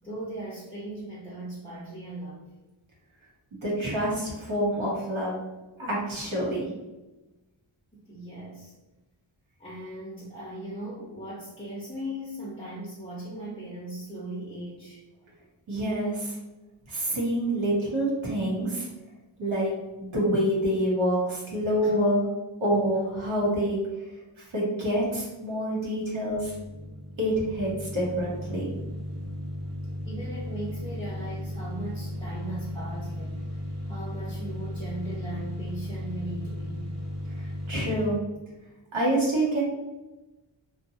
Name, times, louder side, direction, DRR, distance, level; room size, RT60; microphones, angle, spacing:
voice 1, 0.0-2.5 7.9-8.7 9.6-15.0 21.8-22.1 30.0-33.4 33.9-36.9, right 1 dB, 10° left, -8 dB, 0.5 m, -38 dB
voice 2, 3.6-5.4 5.8-6.7 15.7-16.3 16.9-18.9 19.4-19.7 20.0-22.3 22.6-23.8 24.5-26.5 27.2-28.7 37.4-38.2 38.9-39.6, right 1 dB, 75° right, -5 dB, 0.9 m, -27 dB
sound 1, 26.2-38.1, left 1 dB, 35° right, 0.6 m, -36 dB
2.7 x 2.2 x 2.6 m, 1.0 s
wide cardioid pair, 85°, 48 cm